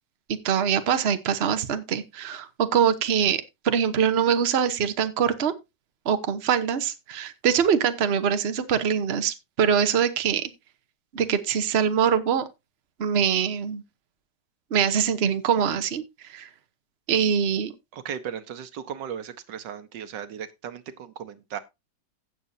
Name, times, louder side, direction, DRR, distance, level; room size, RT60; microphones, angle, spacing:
voice 1, 0.3-5.5 6.0-10.5 11.1-12.4 13.0-13.8 14.7-16.0 16.3-16.5 17.1-17.7, right 7 dB, 45° right, 1.1 m, -23 dB
voice 2, 17.9-21.6, right 8 dB, 85° right, 1.6 m, -36 dB
16.5 x 6.8 x 2.7 m
omnidirectional pair, 1.9 m